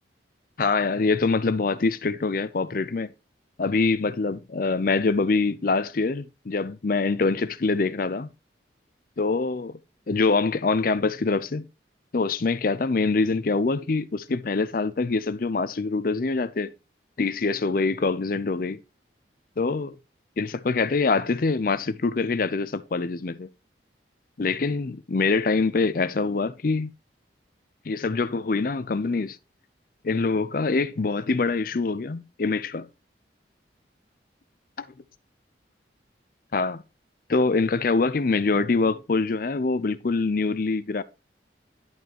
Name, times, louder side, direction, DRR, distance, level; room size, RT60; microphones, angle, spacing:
voice 1, 0.6-3.1 3.6-8.3 9.2-9.8 10.1-11.6 12.1-16.7 17.2-18.8 19.6-20.0 20.4-23.5 24.4-26.9 27.9-29.4 30.0-32.9 34.8-34.9 36.5-36.8 37.3-41.0, left 3 dB, 50° left, 0.5 m, -24 dB
11.0 x 5.4 x 3.0 m
head